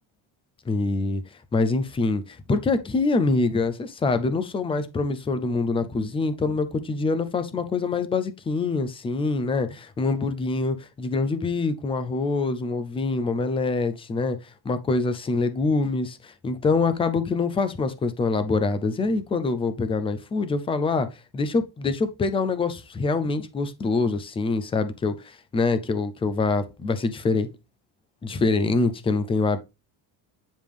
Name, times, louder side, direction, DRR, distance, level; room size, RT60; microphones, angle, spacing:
voice 1, 0.7-1.2 1.5-14.4 14.7-21.1 21.3-27.5 28.2-29.6, left 3 dB, 15° left, 0.3 m, -25 dB
9.2 x 5.2 x 3.4 m
cardioid pair, 170°, 48 cm